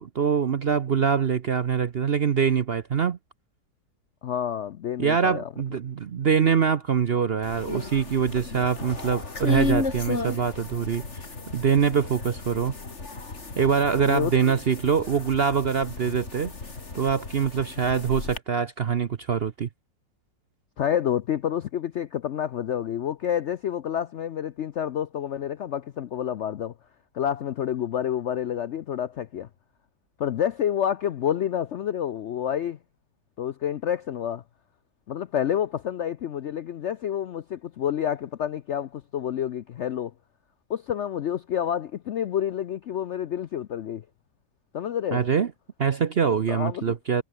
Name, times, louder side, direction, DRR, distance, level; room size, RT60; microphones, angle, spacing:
voice 1, 0.0-3.2 5.0-11.2 11.5-12.7 13.6-16.5 16.9-19.7 45.1-45.5 45.8-47.2, right 7 dB, 50° right, 0.7 m, -24 dB
voice 2, 4.2-5.5 14.1-14.5 20.8-26.7 27.1-29.5 30.2-32.8 33.4-34.4 35.1-40.1 40.7-44.0 44.7-45.2 46.5-46.9, left 9 dB, 70° left, 0.7 m, -28 dB
sound 1, 7.4-18.4, left 3 dB, 40° left, 3.2 m, -34 dB
omnidirectional pair, 1.9 m